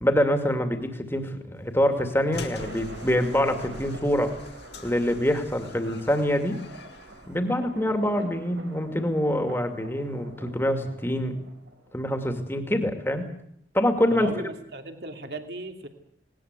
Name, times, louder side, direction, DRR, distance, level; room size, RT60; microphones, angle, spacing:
voice 1, 0.0-4.3 4.8-6.6 7.3-11.4 11.9-13.3 13.7-14.3, equal, 10° left, 6 dB, 2.4 m, -25 dB
sound 1, 1.6-12.0, right 2 dB, 85° right, 3.7 m, -46 dB
sound 2, 2.3-7.4, left 2 dB, 65° left, 2.1 m, -42 dB
voice 2, 14.1-15.9, right 2 dB, 60° right, 6 dB, 2.5 m, -36 dB
19.5 x 19.0 x 8.2 m, 0.72 s
head